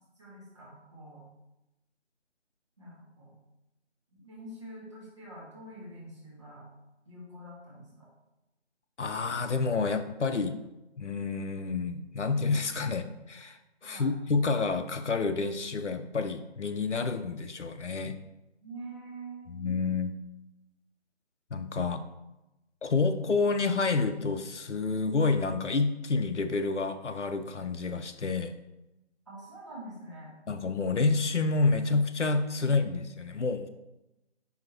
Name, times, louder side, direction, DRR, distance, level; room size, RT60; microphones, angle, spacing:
voice 1, 0.2-1.2 2.8-3.3 4.1-6.7 7.1-8.1 13.8-14.1 18.6-19.8 29.3-30.3 32.6-32.7, right 1 dB, 25° right, -7 dB, 1.8 m, -46 dB
voice 2, 9.0-10.6 11.0-18.1 19.5-20.1 21.5-22.0 22.8-28.5 30.5-33.7, left 4 dB, 80° left, 7 dB, 0.7 m, -29 dB
9.5 x 4.2 x 3.0 m, 0.96 s
figure-of-eight pair, 165°, 35 cm